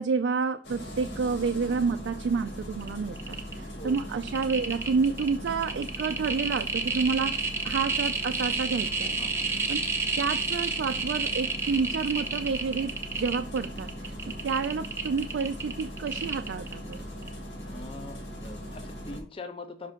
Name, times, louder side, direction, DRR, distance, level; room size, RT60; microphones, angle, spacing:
voice 1, 0.0-9.2 9.7-9.8 10.2-14.1 14.4-17.0, right 5 dB, 85° right, 0.4 m, -29 dB
Engine starting, 0.6-19.2, equal, 80° left, 2.2 m, -40 dB
sound 1, 2.9-3.0 3.1-3.5 3.9-16.9 17.2-17.3, right 4 dB, 15° right, 0.8 m, -30 dB
voice 2, 9.2-9.5 14.2-14.4 17.6-19.9, left 2 dB, 30° left, 0.6 m, -43 dB
5.4 x 3.7 x 5.0 m
head